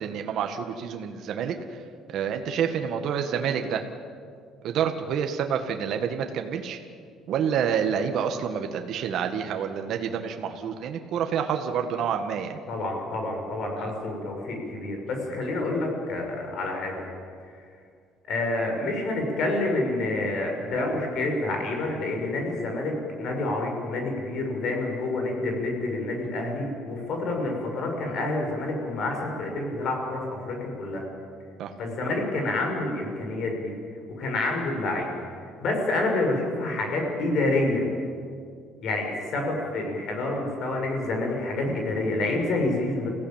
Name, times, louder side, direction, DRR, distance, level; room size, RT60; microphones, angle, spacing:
voice 1, 0.0-1.8 2.1-3.9 4.6-6.8 7.3-12.6 13.8-13.9 31.6-31.7, right 7 dB, 55° right, 5 dB, 1.7 m, -28 dB
voice 2, 12.7-17.0 18.3-31.0 31.8-33.7 34.2-35.1 35.6-37.9 38.8-43.1, left 2 dB, 50° left, 2 dB, 5.9 m, -28 dB
28.5 x 16.5 x 9.0 m, 2.2 s
cardioid pair, 145°, 0 cm